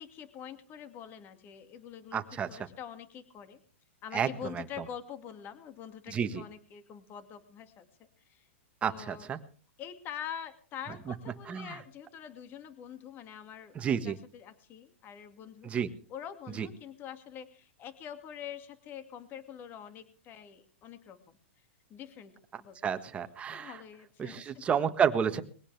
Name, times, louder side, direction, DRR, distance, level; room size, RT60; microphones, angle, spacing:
voice 1, 0.0-2.2 2.5-3.6 4.0-8.5 8.8-9.3 9.8-13.8 14.0-15.7 16.1-21.4 21.9-22.8 23.5-24.7, left 9 dB, 30° left, 9 dB, 2.3 m, -45 dB
voice 2, 2.1-2.5 4.1-4.6 6.1-6.4 8.8-9.4 11.1-11.2 11.5-11.8 13.7-14.2 15.6-15.9 16.5-16.7 22.5-23.8 24.2-25.4, right 7 dB, 20° right, 9 dB, 1.5 m, -31 dB
21.5 x 17.0 x 3.4 m, 0.41 s
hypercardioid pair, 145°, 7 cm